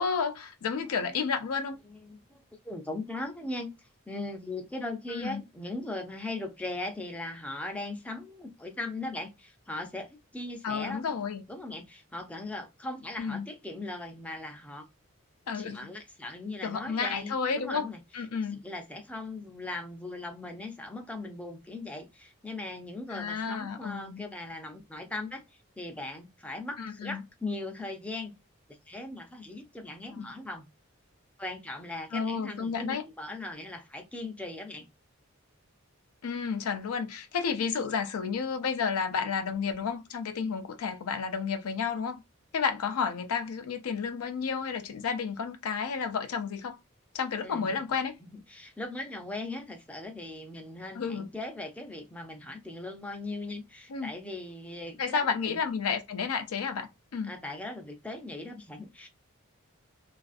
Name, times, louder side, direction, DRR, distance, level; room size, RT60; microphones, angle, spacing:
voice 1, 0.0-1.8 5.1-5.4 10.6-11.4 13.2-13.5 15.5-15.9 16.6-17.9 18.1-18.6 23.1-24.2 26.8-27.2 30.1-30.3 32.1-33.0 36.2-42.2 42.5-46.8 47.1-48.2 50.9-51.3 53.9-54.1 55.0-57.3, left 6 dB, 85° left, 0.5 m, -31 dB
voice 2, 1.9-11.0 11.5-14.8 15.5-18.0 18.6-28.3 28.9-30.7 31.4-34.9 47.4-47.7 48.3-55.6 57.2-59.1, left 2 dB, 5° left, 0.4 m, -39 dB
2.4 x 2.4 x 2.4 m
head